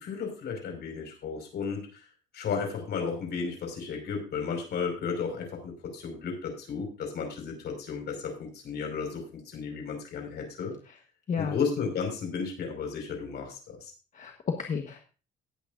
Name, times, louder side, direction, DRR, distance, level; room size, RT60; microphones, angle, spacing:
voice 1, 0.0-2.0 2.3-10.7 11.4-13.9, left 5 dB, 55° left, 3 dB, 5.2 m, -34 dB
voice 2, 14.1-15.0, left 6 dB, 40° left, 4 dB, 1.3 m, -32 dB
18.0 x 8.8 x 2.6 m, 0.35 s
cardioid pair, 130°, 20 cm